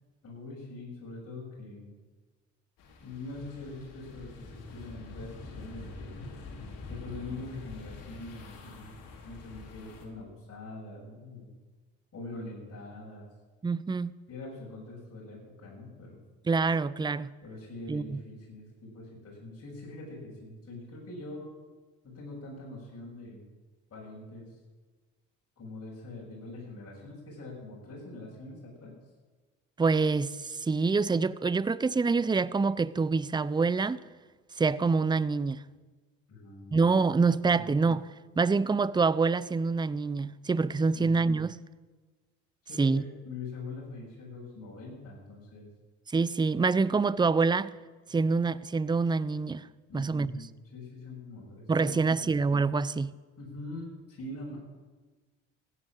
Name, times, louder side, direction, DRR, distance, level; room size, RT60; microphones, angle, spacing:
voice 1, 0.2-1.9 3.0-6.2 6.9-11.5 12.1-13.3 14.3-16.2 17.4-21.5 22.0-23.4 23.9-24.5 25.6-28.9 36.3-36.9 37.5-37.7 40.9-41.2 42.7-45.7 49.9-52.3 53.4-54.6, left 2 dB, 40° left, 6.9 m, -43 dB
sound 1, 2.8-10.1, left 3 dB, 65° left, 3.3 m, -45 dB
voice 2, 13.6-14.1 16.5-17.3 17.9-18.2 29.8-34.0 34.6-35.6 36.7-38.1 38.4-41.6 42.8-43.0 46.1-47.7 48.1-49.7 49.9-50.3 51.7-53.1, right 4 dB, 10° right, 0.6 m, -26 dB
15.0 x 10.0 x 9.1 m
hypercardioid pair, 60°, 36 cm